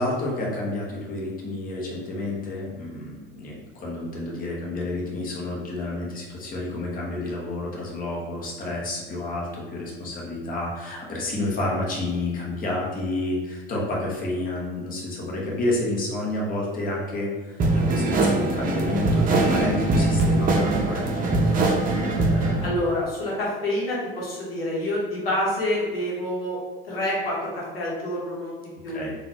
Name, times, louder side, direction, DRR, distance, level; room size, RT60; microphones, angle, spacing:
voice 1, 0.0-22.7 28.9-29.1, left 2 dB, 30° left, -3 dB, 1.1 m, -30 dB
sound 1, 17.6-22.7, right 2 dB, 30° right, 0.7 m, -22 dB
voice 2, 22.6-26.6 26.8-29.0, left 1 dB, 80° left, -5 dB, 1.1 m, -27 dB
3.8 x 2.5 x 2.9 m, 1.4 s
figure-of-eight pair, 75°, 29 cm